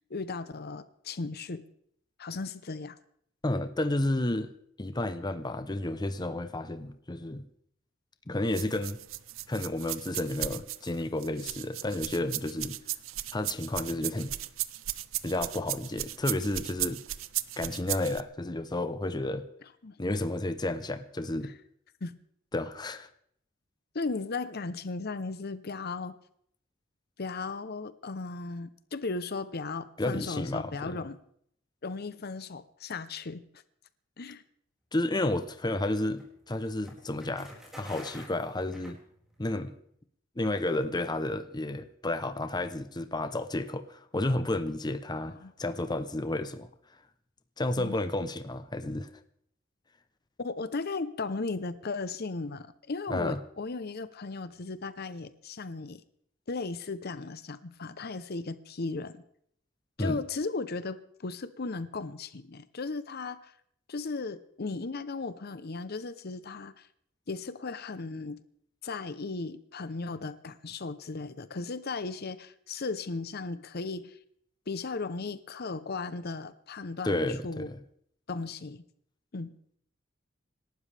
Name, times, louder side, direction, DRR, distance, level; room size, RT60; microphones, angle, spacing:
voice 1, 0.1-1.6 2.2-3.0 19.8-20.0 21.4-21.5 22.0-22.1 23.9-26.2 27.2-31.2 31.8-33.4 34.2-34.4 45.3-45.5 47.8-48.0 50.4-56.0 56.5-59.2 60.0-63.5 63.9-66.9 67.3-68.4 68.8-74.2 74.7-77.7 78.3-78.8 79.3-79.5, left 3 dB, 50° left, 13 dB, 0.8 m, -36 dB
voice 2, 3.4-4.5 4.8-7.5 8.3-9.0 9.5-12.8 13.3-14.3 15.2-17.0 17.6-19.5 20.0-21.5 22.5-23.1 30.0-31.1 34.9-39.0 39.4-39.7 40.4-46.7 47.6-49.1 53.1-53.4 60.0-60.2 77.0-77.8, left 1 dB, 20° left, 11 dB, 0.7 m, -31 dB
sound 1, 8.5-18.2, right 14 dB, 85° right, 0.6 m, -36 dB
sound 2, 35.2-39.5, equal, ahead, 4.9 m, -49 dB
26.5 x 12.5 x 3.4 m, 0.67 s
head